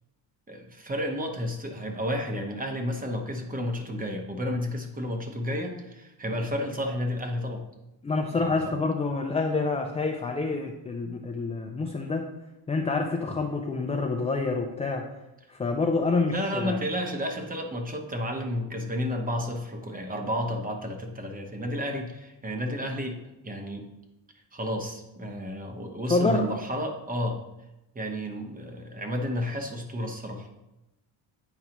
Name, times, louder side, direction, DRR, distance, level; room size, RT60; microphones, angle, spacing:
voice 1, 0.5-7.7 8.4-8.6 16.2-23.2 23.4-23.8 24.5-27.4 27.9-30.6, equal, 20° right, 3 dB, 0.9 m, -31 dB
voice 2, 8.0-12.3 12.7-15.0 15.5-16.8 26.1-26.5, left 3 dB, 15° left, 2 dB, 0.3 m, -27 dB
9.1 x 4.7 x 2.9 m, 0.93 s
cardioid pair, 135°, 45 cm